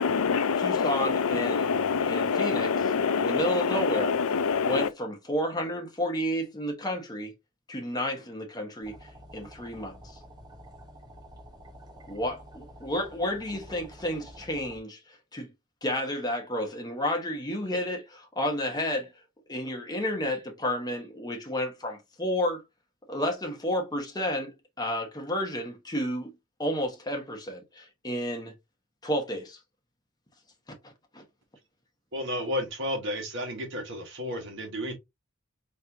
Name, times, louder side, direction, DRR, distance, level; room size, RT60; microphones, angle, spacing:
voice 1, 0.0-4.9, left 6 dB, 90° left, 0.5 m, -26 dB
voice 2, 0.6-2.7 3.2-4.1 4.6-7.3 7.7-10.0 12.1-15.5 15.8-19.1 19.5-22.6 23.1-26.3 26.6-28.5 29.0-29.6 30.8-31.2, equal, 20° left, 1.3 m, -31 dB
sound 1, 8.8-14.8, right 1 dB, 20° right, 1.1 m, -49 dB
voice 3, 32.1-34.9, left 1 dB, 60° right, 1.6 m, -32 dB
4.3 x 3.3 x 2.8 m
head